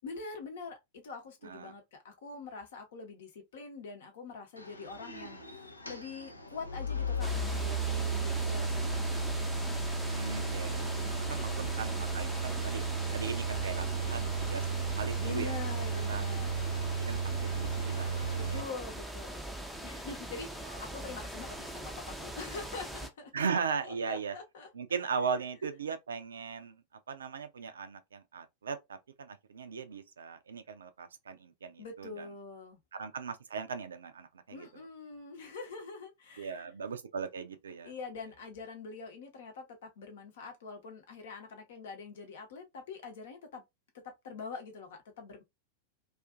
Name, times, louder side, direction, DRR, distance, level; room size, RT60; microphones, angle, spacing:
voice 1, 0.0-9.2 10.9-11.6 15.2-16.6 18.3-23.3 23.8-24.7 25.0-25.1 31.8-32.8 34.5-36.7 37.8-43.6 44.2-45.4, left 4 dB, 60° left, 0.8 m, -45 dB
voice 2, 1.4-1.7 10.1-12.8 13.1-15.5 16.1-16.5 17.1-18.7 23.3-24.3 24.7-32.3 32.9-34.7 36.4-37.9, right 6 dB, 70° right, 0.4 m, -38 dB
sound 1, 4.6-18.6, right 4 dB, 85° left, 0.4 m, -34 dB
sound 2, 7.2-23.1, right 1 dB, ahead, 0.5 m, -41 dB
2.4 x 2.4 x 2.4 m
figure-of-eight pair, 90°, 0 cm